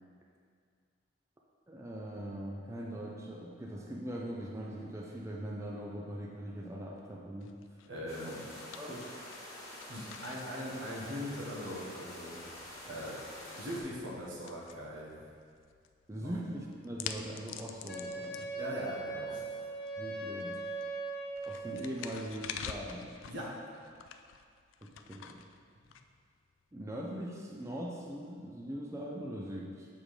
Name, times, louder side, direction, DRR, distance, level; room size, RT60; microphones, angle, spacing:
voice 1, 1.7-7.6 8.7-9.0 16.1-18.5 20.0-20.7 21.5-23.1 24.8-25.4 26.7-29.9, right 1 dB, 15° right, -2 dB, 0.4 m, -41 dB
sound 1, 7.4-26.6, left 8 dB, 85° left, 0.3 m, -49 dB
voice 2, 7.8-8.4 8.9-9.0 9.9-13.2 13.6-15.2 16.2-16.4 18.6-19.4 23.3-23.5, equal, 80° right, -4 dB, 1.3 m, -41 dB
sound 2, 8.1-13.8, left 1 dB, 20° left, 1.3 m, -47 dB
Wind instrument woodwind instrument, 17.9-22.0, right 3 dB, 55° left, 1.2 m, -40 dB
7.0 x 3.7 x 4.8 m, 2.2 s
head